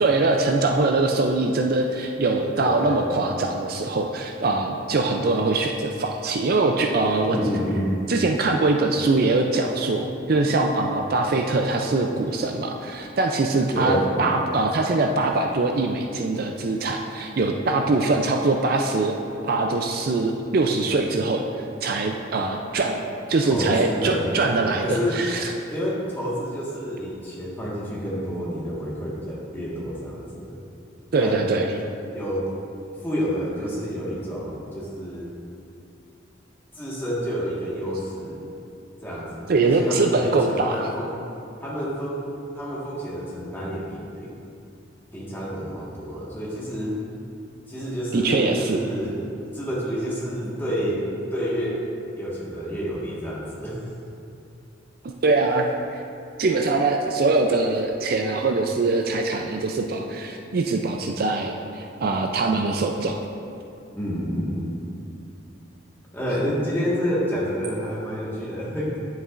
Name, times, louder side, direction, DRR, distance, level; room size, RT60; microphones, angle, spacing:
voice 1, 0.0-7.4 8.1-19.2 19.4-21.4 21.8-23.0 23.3-25.5 31.1-31.7 39.5-40.9 48.1-48.8 55.2-55.7 55.9-56.0 56.4-63.2, right 3 dB, 50° right, 3 dB, 0.4 m, -22 dB
voice 2, 2.4-3.1 7.3-7.9 13.7-14.1 23.4-24.2 24.8-25.2 25.7-30.6 31.2-31.4 32.1-32.5 33.0-35.3 36.7-38.4 39.0-41.1 41.6-42.2 42.5-44.3 45.1-46.9 47.7-51.0 51.3-51.8 52.2-53.8 63.9-64.7 66.1-69.0, equal, 10° left, -7 dB, 1.5 m, -29 dB
9.6 x 8.0 x 2.5 m, 2.6 s
head